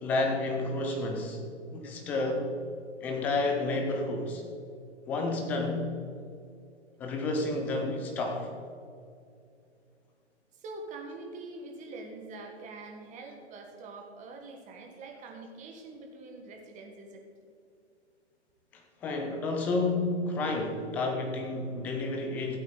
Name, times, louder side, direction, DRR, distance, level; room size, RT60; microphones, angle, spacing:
voice 1, 0.0-1.4 1.7-2.5 3.0-4.4 5.1-5.9 7.0-8.5 18.7-22.6, left 2 dB, 5° left, 3 dB, 0.3 m, -30 dB
voice 2, 10.6-17.2, right 3 dB, 20° right, 2 dB, 1.7 m, -44 dB
15.0 x 8.4 x 4.1 m, 2.4 s
hypercardioid pair, 130°, 35 cm